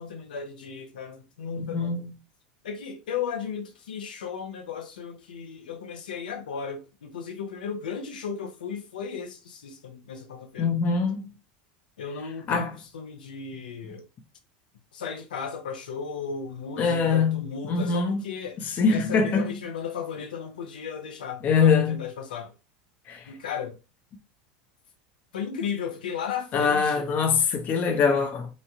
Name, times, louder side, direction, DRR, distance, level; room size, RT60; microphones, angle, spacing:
voice 1, 0.0-2.0 2.6-10.7 12.0-14.0 14.9-18.6 18.9-22.5 23.3-23.8 25.3-27.1, left 6 dB, 90° left, 0.7 m, -35 dB
voice 2, 1.6-2.0 10.6-11.3 12.5-12.8 16.8-17.4 17.7-18.2 18.8-19.5 21.4-22.0 23.1-23.2 26.5-28.5, left 5 dB, 40° left, 0.7 m, -23 dB
3.1 x 2.2 x 2.7 m
hypercardioid pair, 100°, 5 cm